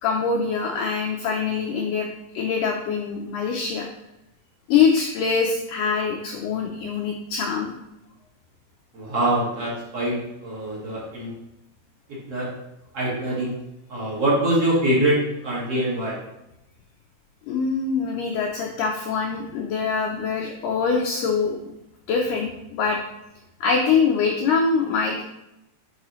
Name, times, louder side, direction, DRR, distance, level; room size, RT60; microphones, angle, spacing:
voice 1, 0.0-2.1 2.3-3.9 4.7-7.7 17.5-21.7 22.1-23.0 23.6-25.3, left 5 dB, 80° left, 1 dB, 1.9 m, -24 dB
voice 2, 8.9-10.1 10.4-11.3 12.1-12.5 12.9-13.5 13.9-16.2, right 1 dB, 45° right, -7 dB, 2.4 m, -24 dB
10.5 x 4.8 x 3.1 m, 0.88 s
omnidirectional pair, 4.5 m